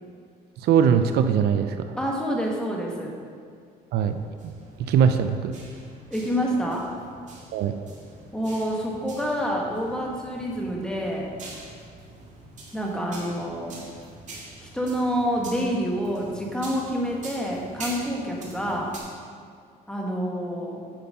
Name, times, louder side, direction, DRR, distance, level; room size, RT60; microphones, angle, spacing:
voice 1, 0.6-2.0 3.9-4.2 4.4-4.5 4.9-5.5 7.5-7.7, right 7 dB, 75° right, 8 dB, 0.6 m, -21 dB
voice 2, 2.0-3.2 6.1-6.9 8.3-11.3 12.7-13.7 14.6-18.9 19.9-20.8, equal, 5° left, -2 dB, 1.6 m, -27 dB
sound 1, 4.0-19.0, right 2 dB, 45° right, 2.2 m, -44 dB
8.9 x 6.0 x 5.4 m, 2.2 s
cardioid pair, 110°, 17 cm